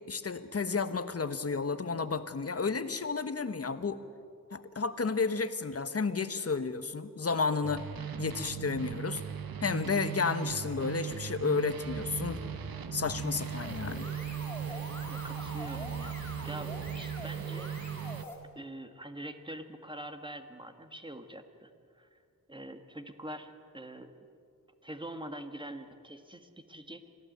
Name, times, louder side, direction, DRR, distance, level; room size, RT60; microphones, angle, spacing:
voice 1, 0.1-4.0 4.5-7.8 8.2-9.2 9.6-12.4 12.9-14.1, left 4 dB, 45° left, 11 dB, 1.3 m, -32 dB
sound 1, 7.6-18.2, right 9 dB, 80° right, 1.2 m, -38 dB
sound 2, 11.8-17.0, equal, 35° right, 7.9 m, -47 dB
sound 3, 13.1-18.4, left 1 dB, 5° left, 4.9 m, -45 dB
voice 2, 14.6-17.7 18.6-22.2 22.5-24.1 24.8-27.0, right 1 dB, 15° right, 7 dB, 1.8 m, -45 dB
25.5 x 16.0 x 9.4 m, 2.4 s
wide cardioid pair, 90°, 35 cm